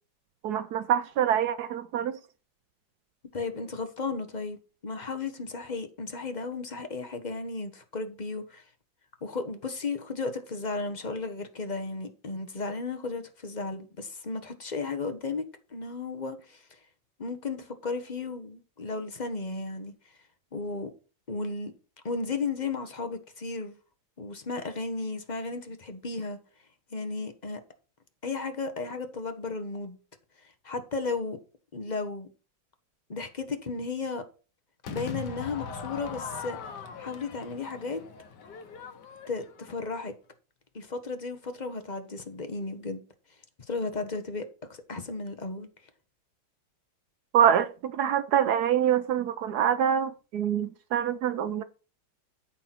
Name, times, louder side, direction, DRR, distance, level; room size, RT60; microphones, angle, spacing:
voice 1, 0.4-2.2 47.3-51.6, right 9 dB, 70° right, 1.0 m, -25 dB
voice 2, 3.3-4.6 4.8-8.6 9.2-15.4 15.7-16.8 17.2-19.9 20.5-20.9 21.3-21.7 22.0-23.8 24.2-26.4 26.9-27.6 28.2-30.0 30.6-31.4 31.7-32.3 33.1-34.2 34.9-36.7 37.0-38.0 39.3-40.1 40.7-43.0 43.7-44.5 44.9-45.7, left 4 dB, 30° left, 1.0 m, -34 dB
Crowd / Fireworks, 34.8-40.1, left 6 dB, 65° left, 1.6 m, -41 dB
13.0 x 4.5 x 5.9 m
omnidirectional pair, 2.1 m